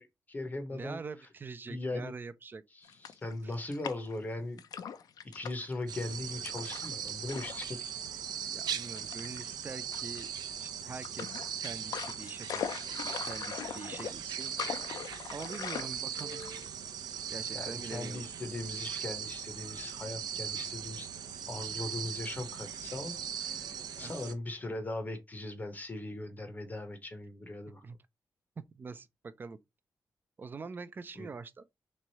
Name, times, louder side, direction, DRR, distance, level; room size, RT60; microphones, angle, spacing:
voice 1, 0.0-1.0 1.7-2.1 2.7-4.6 5.3-7.8 15.0-15.2 17.5-23.7 24.0-27.8 31.2-31.3, left 2 dB, 25° left, 0.7 m, -39 dB
voice 2, 0.7-2.6 8.5-10.3 10.6-12.8 13.2-14.5 15.3-16.4 17.3-18.2 24.0-24.3 27.8-28.0 28.7-29.6 30.4-31.6, right 4 dB, 30° right, 0.4 m, -44 dB
sound 1, 2.8-4.2 4.6-5.8 6.4-7.7 7.9-8.1 9.0-9.4 9.9-10.6 11.0-16.9, left 8 dB, 70° left, 0.4 m, -41 dB
sound 2, 5.9-24.3, right 8 dB, 80° right, 0.6 m, -39 dB
3.5 x 3.1 x 4.1 m
wide cardioid pair, 175°, 7 cm